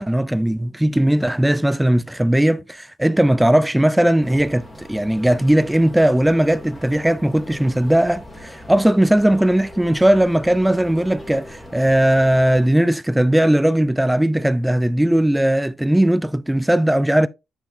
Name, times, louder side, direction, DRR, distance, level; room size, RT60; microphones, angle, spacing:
voice 1, 0.0-17.3, right 1 dB, 5° right, 0.4 m, -18 dB
sound 1, 4.2-12.7, left 1 dB, 15° left, 2.9 m, -40 dB
8.8 x 5.5 x 2.7 m
cardioid pair, 90°, 0 cm